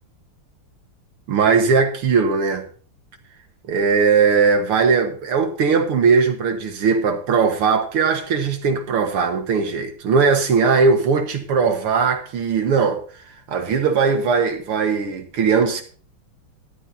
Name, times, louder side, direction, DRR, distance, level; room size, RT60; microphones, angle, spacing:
voice 1, 1.3-2.7 3.7-13.0 13.5-15.8, right 5 dB, 80° right, 2.3 m, -19 dB
13.5 x 13.5 x 2.7 m
omnidirectional pair, 2.4 m